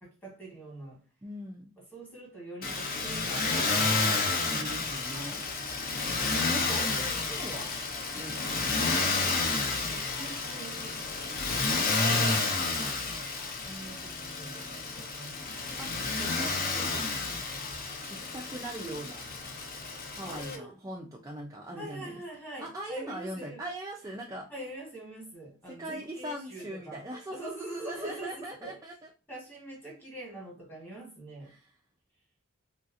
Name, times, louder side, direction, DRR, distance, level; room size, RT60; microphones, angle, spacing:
voice 1, 0.0-1.0 1.8-4.3 9.9-11.4 13.6-15.8 20.2-20.7 21.8-23.6 24.5-27.0 27.3-28.8 29.3-31.5, right 1 dB, 10° left, 1.3 m, -44 dB
voice 2, 1.2-1.7 4.5-5.5 6.2-7.7 8.1-9.4 12.0-13.0 15.8-15.9 16.2-17.4 18.1-19.2 20.1-22.2 22.6-24.5 25.8-29.1 31.5-31.7, right 1 dB, 15° right, 0.3 m, -41 dB
Motor vehicle (road), 2.6-20.6, left 3 dB, 45° left, 0.5 m, -31 dB
3.1 x 2.7 x 2.4 m
head